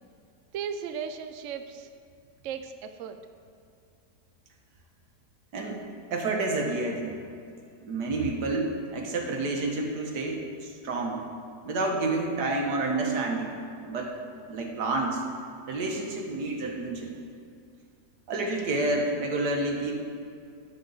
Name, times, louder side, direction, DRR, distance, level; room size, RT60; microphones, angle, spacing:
voice 1, 0.5-1.9 2.4-3.2, right 7 dB, 65° right, 8 dB, 0.8 m, -36 dB
voice 2, 5.5-7.2 7.8-11.2 11.6-13.5 13.8-14.1 14.5-15.2 15.7-17.1 18.3-19.9, right 2 dB, 85° right, 1 dB, 1.7 m, -29 dB
12.0 x 6.7 x 3.9 m, 2.4 s
omnidirectional pair, 1.7 m